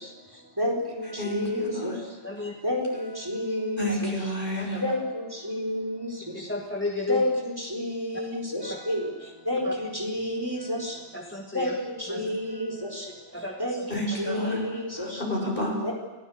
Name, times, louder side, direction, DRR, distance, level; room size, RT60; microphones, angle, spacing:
voice 1, 0.6-1.9 2.6-4.1 4.8-6.1 7.1-9.1 9.5-10.9 11.5-13.0 13.6-15.2 15.8-15.9, left 1 dB, 20° right, 0 dB, 4.2 m, -30 dB
voice 2, 1.2-2.0 3.8-4.8 13.9-14.6 15.0-15.8, left 1 dB, 50° left, -1 dB, 7.4 m, -30 dB
voice 3, 2.2-2.5 4.5-4.8 6.3-7.2 9.6-9.7 11.1-11.8 12.1-12.4 13.3-13.9 14.2-14.4, left 2 dB, 10° left, 1 dB, 1.8 m, -33 dB
29.0 x 17.0 x 8.0 m, 1.1 s
omnidirectional pair, 1.2 m